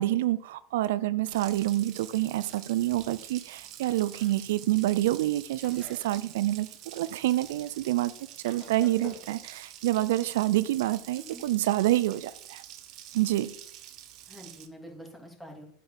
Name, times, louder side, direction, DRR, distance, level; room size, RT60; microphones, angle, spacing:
voice 1, 0.0-8.1 8.4-12.6 13.1-13.5, right 15 dB, 70° right, 0.4 m, -27 dB
Water tap faucet, 1.2-14.7, right 12 dB, 50° right, 1.3 m, -47 dB
Chewing mastication, 1.6-9.5, left 3 dB, 35° left, 3.7 m, -53 dB
voice 2, 11.2-11.5 14.3-15.6, equal, 5° left, 3.1 m, -46 dB
9.0 x 6.8 x 5.2 m
hypercardioid pair, 95°, 0 cm